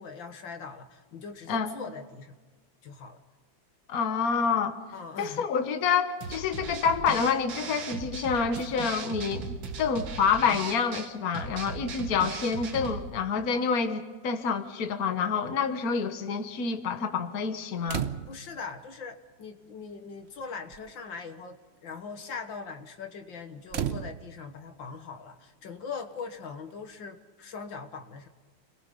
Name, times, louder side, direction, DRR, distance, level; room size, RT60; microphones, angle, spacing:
voice 1, 0.0-2.4 2.8-3.2 4.9-5.5 18.3-28.3, left 5 dB, 75° left, 6 dB, 2.1 m, -41 dB
voice 2, 3.9-4.8 5.2-18.0, left 6 dB, 50° left, 7 dB, 1.7 m, -28 dB
sound 1, 6.2-13.1, right 5 dB, 80° right, 2.3 m, -38 dB
sound 2, 17.9-18.6 19.7-19.8 20.1-20.4 20.7-21.0 23.7-24.6 26.2-26.3, right 9 dB, 65° right, 0.6 m, -34 dB
29.5 x 21.5 x 5.4 m, 1.4 s
omnidirectional pair, 2.1 m